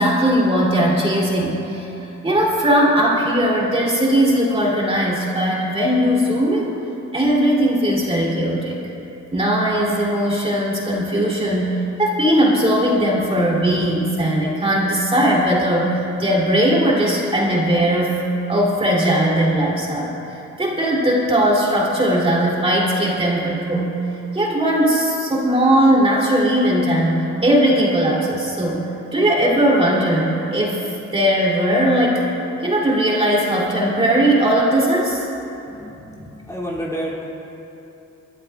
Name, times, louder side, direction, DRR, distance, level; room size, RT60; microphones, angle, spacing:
voice 1, 0.0-6.7 7.1-8.8 9.3-20.1 20.6-23.9 24.3-28.8 29.1-30.8 31.1-32.3 32.6-35.3, right 1 dB, 20° right, -4 dB, 3.0 m, -18 dB
voice 2, 35.7-37.3, equal, 10° left, -5 dB, 2.7 m, -30 dB
27.0 x 12.5 x 2.4 m, 2.9 s
cardioid pair, 90°, 30 cm